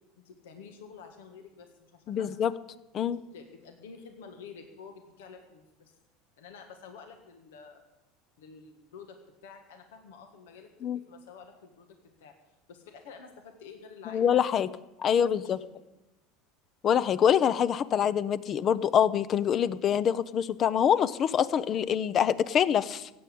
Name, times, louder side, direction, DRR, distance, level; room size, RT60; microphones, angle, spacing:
voice 1, 0.2-2.3 3.1-6.0 6.4-7.9 8.4-9.2 9.4-12.3 12.7-14.5 15.0-15.7, left 5 dB, 80° left, 5 dB, 1.7 m, -49 dB
voice 2, 2.1-2.5 2.9-3.2 10.8-11.0 14.1-14.7 15.0-15.6 16.8-23.1, left 8 dB, 40° left, 17 dB, 0.7 m, -25 dB
15.5 x 7.8 x 8.6 m, 1.0 s
hypercardioid pair, 90°, 0 cm